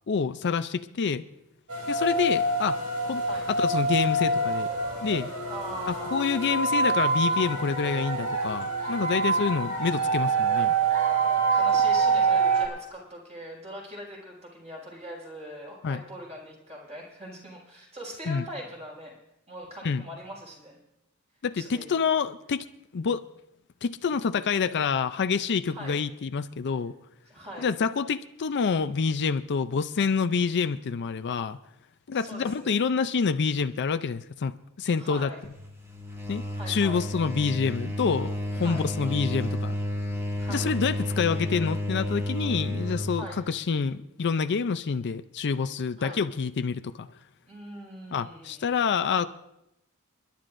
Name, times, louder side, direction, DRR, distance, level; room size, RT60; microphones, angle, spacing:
voice 1, 0.1-1.2 1.9-4.7 5.0-5.3 5.9-10.7 15.8-16.0 18.3-18.4 19.8-20.1 21.4-22.7 22.9-23.2 23.8-26.9 27.6-31.6 32.1-35.3 36.3-36.4 36.7-39.7 40.5-47.1 48.1-49.3, left 5 dB, 50° left, 11 dB, 0.5 m, -27 dB
sound 1, 1.7-12.7, right 3 dB, 75° right, 3.5 m, -26 dB
voice 2, 5.5-6.1 9.1-9.5 11.5-19.1 19.5-20.8 21.6-22.0 25.7-26.0 27.3-27.7 32.1-32.8 35.0-35.4 36.5-37.0 38.6-38.9 40.4-40.7 43.1-43.5 46.0-46.2 47.5-48.7, equal, 30° right, -2 dB, 5.4 m, -41 dB
sound 2, 35.4-43.2, left 1 dB, 10° right, 1.7 m, -31 dB
29.0 x 11.5 x 2.6 m, 0.84 s
head